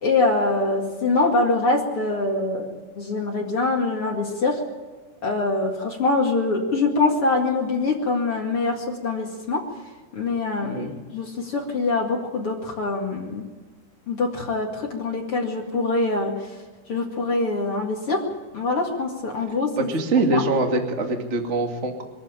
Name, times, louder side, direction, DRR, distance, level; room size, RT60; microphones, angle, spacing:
voice 1, 0.0-4.6 5.2-9.6 10.1-13.4 14.1-16.3 16.9-18.2 18.5-19.9 20.3-20.4, left 3 dB, 50° left, 0 dB, 1.7 m, -24 dB
voice 2, 10.6-10.9 19.7-22.0, right 2 dB, 45° right, 2 dB, 0.9 m, -23 dB
23.5 x 14.0 x 8.9 m, 1.4 s
omnidirectional pair, 5.9 m